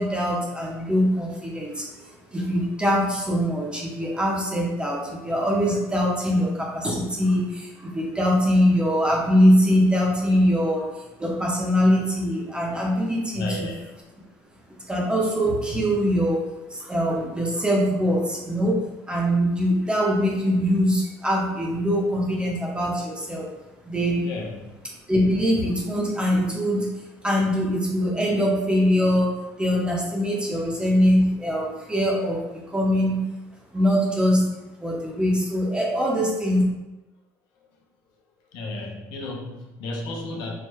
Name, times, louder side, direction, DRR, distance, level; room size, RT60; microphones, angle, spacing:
voice 1, 0.0-1.9 2.3-10.9 11.2-13.7 14.9-16.4 16.7-18.8 19.1-23.5 23.8-24.2 25.1-27.0 27.2-33.2 33.7-34.5 34.8-36.6, equal, 15° right, -3 dB, 1.1 m, -22 dB
voice 2, 13.3-13.9 24.2-24.7 30.5-30.9 37.6-37.9 38.4-40.5, left 2 dB, 70° left, 0 dB, 0.7 m, -34 dB
4.7 x 3.1 x 2.2 m, 1.0 s
supercardioid pair, 80°, 8 cm